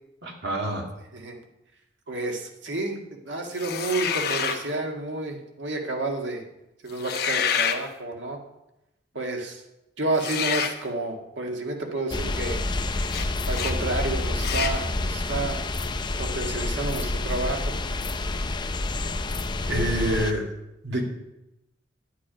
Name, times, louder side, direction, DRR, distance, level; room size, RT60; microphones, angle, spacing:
voice 1, 0.2-0.9 19.7-20.5 20.8-21.0, right 1 dB, 65° right, 1 dB, 2.2 m, -26 dB
voice 2, 2.1-3.0 3.3-6.4 6.8-8.4 9.1-9.6 10.0-12.6 13.5-15.6 16.2-17.7, right 2 dB, 90° right, 2 dB, 1.8 m, -30 dB
sound 1, 3.6-4.6 6.9-7.8 10.2-10.8 13.1-13.3 13.5-13.8 14.4-14.8, left 7 dB, 55° left, 1.0 m, -27 dB
sound 2, 12.1-20.3, left 2 dB, 25° left, 0.6 m, -28 dB
11.0 x 8.4 x 5.2 m, 0.93 s
head